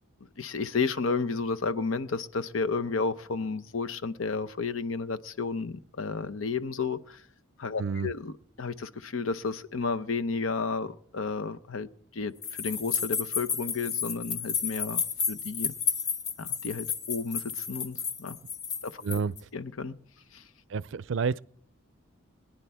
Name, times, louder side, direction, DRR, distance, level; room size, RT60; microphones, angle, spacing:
voice 1, 0.4-7.2 7.6-11.9 12.1-15.7 16.4-18.4 18.8-19.0 19.5-20.0 20.3-20.4, left 4 dB, 85° left, 0.8 m, -32 dB
voice 2, 7.8-8.1 19.0-19.3 20.7-21.4, right 5 dB, 70° right, 0.4 m, -29 dB
sound 1, 12.4-19.4, left 6 dB, 65° left, 1.6 m, -32 dB
22.5 x 10.5 x 3.5 m
head